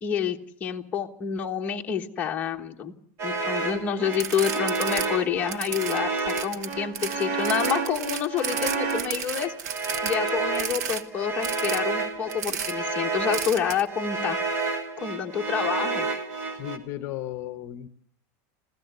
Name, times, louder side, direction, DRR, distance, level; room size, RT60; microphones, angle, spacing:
voice 1, 0.0-2.9 3.2-9.5 10.0-14.4 15.0-16.1, left 8 dB, 20° left, 1 dB, 1.3 m, -28 dB
sound 1, 3.2-16.8, right 4 dB, 50° right, 2.8 m, -30 dB
sound 2, 4.1-5.1 5.4-11.0 11.4-11.8 12.3-12.7 13.3-13.8, right 8 dB, 85° right, 1.5 m, -33 dB
voice 2, 16.6-17.9, left 13 dB, 40° left, 10 dB, 0.9 m, -35 dB
27.0 x 16.0 x 8.0 m, 0.66 s
supercardioid pair, 170°, 9 cm